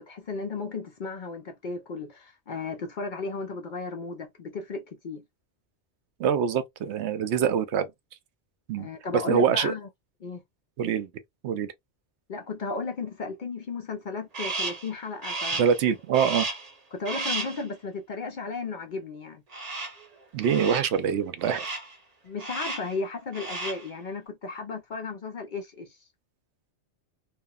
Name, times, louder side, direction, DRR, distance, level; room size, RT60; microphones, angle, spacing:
voice 1, 0.0-5.2 8.8-9.9 10.2-10.4 12.3-15.6 16.9-19.4 22.2-26.0, left 4 dB, 55° left, 0.6 m, -34 dB
voice 2, 6.2-7.9 8.7-8.9 9.3-9.7 10.8-11.1 11.4-11.7 15.6-16.5 20.3-21.7, right 7 dB, 75° right, 0.9 m, -24 dB
Crow, 14.3-14.9 15.2-15.8 16.1-16.7 17.0-17.6 19.5-20.0 20.4-20.9 21.4-21.9 22.4-22.9 23.3-23.9, right 3 dB, 35° right, 0.9 m, -33 dB
2.9 x 2.4 x 2.2 m
omnidirectional pair, 1.2 m